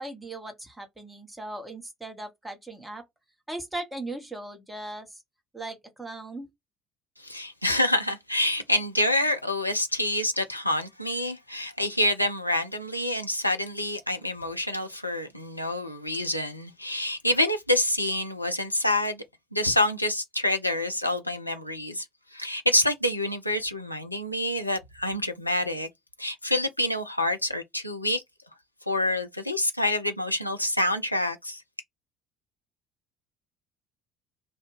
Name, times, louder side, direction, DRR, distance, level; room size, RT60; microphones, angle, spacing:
voice 1, 0.0-3.0 3.5-5.2 5.5-6.5, right 2 dB, 10° right, 0.9 m, -38 dB
voice 2, 7.2-19.2 19.5-22.1 22.3-25.9 26.2-28.2 28.9-31.6, left 1 dB, 90° left, 0.3 m, -27 dB
2.3 x 2.1 x 3.2 m
figure-of-eight pair, 60°, 0 cm